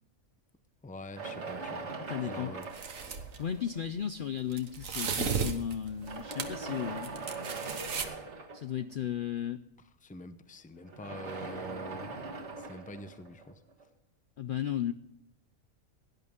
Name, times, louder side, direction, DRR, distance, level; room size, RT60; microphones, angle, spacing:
voice 1, 0.8-1.9 2.2-2.7 10.0-12.2 12.6-13.6, left 1 dB, 10° left, 11 dB, 0.5 m, -45 dB
Wood On Rollers, 1.2-3.9 4.7-4.8 5.9-8.9 10.8-13.8, right 3 dB, 60° right, 2.0 m, -41 dB
voice 2, 2.1-2.5 3.4-7.1 8.5-9.6 14.4-14.9, left 9 dB, 60° left, 11 dB, 0.6 m, -35 dB
sound 1, 2.6-3.4 4.5-6.6 7.0-8.1, right 6 dB, 85° right, 1.7 m, -34 dB
17.5 x 11.0 x 3.6 m, 0.78 s
omnidirectional pair, 1.4 m